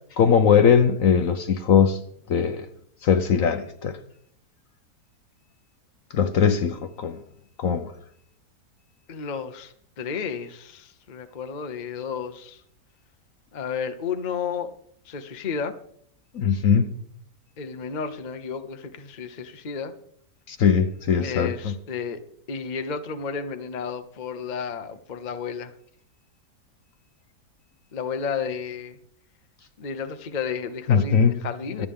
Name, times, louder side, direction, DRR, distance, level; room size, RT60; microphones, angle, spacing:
voice 1, 0.2-2.0 2.3-2.6 3.0-4.0 6.1-7.2 7.6-7.9 16.3-16.9 20.5-21.7 30.9-31.3 31.8-31.9, left 7 dB, 60° left, 1.1 m, -20 dB
voice 2, 9.1-12.6 13.5-14.7 15.1-15.7 17.6-19.9 21.2-22.2 22.5-25.7 27.9-29.0 29.8-31.9, left 6 dB, 35° left, 0.8 m, -32 dB
25.5 x 8.5 x 3.6 m
omnidirectional pair, 1.8 m